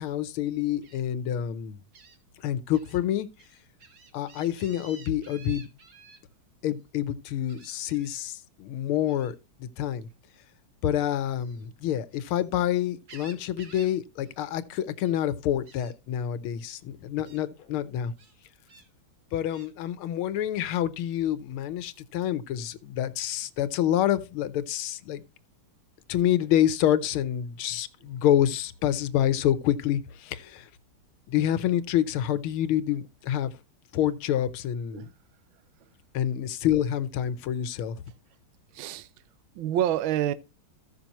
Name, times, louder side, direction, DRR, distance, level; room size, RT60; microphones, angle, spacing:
voice 1, 0.0-1.8 2.4-3.3 4.1-5.7 6.6-9.3 9.6-10.1 10.8-18.1 19.3-25.2 26.1-30.7 31.3-33.5 33.9-35.1 36.1-38.0, left 11 dB, 80° left, 1.6 m, -27 dB
Gull seagull, 0.8-1.0 1.9-2.2 2.7-3.0 3.4-6.2 7.5-8.2 9.1-9.4 11.2-12.5 12.8-14.0 14.2-14.5 14.8-15.3 15.7-15.9 16.7-16.8 17.2-17.4 18.2-18.9 19.5-19.7, right 4 dB, 50° right, 1.9 m, -52 dB
voice 2, 38.7-39.1 39.5-40.3, right 11 dB, 70° right, 1.5 m, -27 dB
15.0 x 6.0 x 2.9 m
omnidirectional pair, 2.4 m